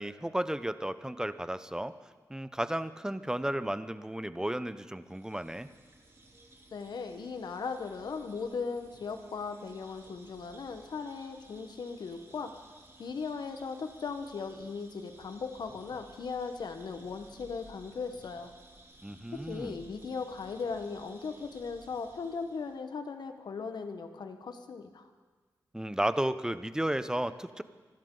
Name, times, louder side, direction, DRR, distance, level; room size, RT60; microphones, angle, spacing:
voice 1, 0.0-1.9 2.3-5.7 19.0-19.8 25.7-27.6, right 1 dB, 10° right, 13 dB, 0.8 m, -33 dB
sound 1, 5.0-22.8, right 1 dB, 40° right, 3.3 m, -57 dB
voice 2, 6.7-12.5 13.0-18.5 19.3-25.1, left 5 dB, 75° left, 7 dB, 1.2 m, -38 dB
25.0 x 13.0 x 3.9 m, 1.4 s
cardioid pair, 55°, 7 cm